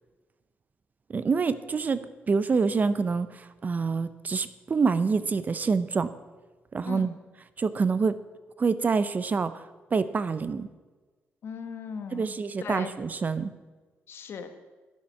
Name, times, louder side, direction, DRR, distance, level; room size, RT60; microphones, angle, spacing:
voice 1, 1.1-6.1 6.7-7.1 7.6-8.1 8.6-9.5 9.9-10.7 12.1-13.5, right 4 dB, 40° right, 14 dB, 0.6 m, -26 dB
voice 2, 11.4-12.3 12.6-12.9 14.1-14.5, left 6 dB, 65° left, 8 dB, 1.2 m, -37 dB
11.5 x 7.6 x 5.8 m, 1.3 s
cardioid pair, 85°, 4 cm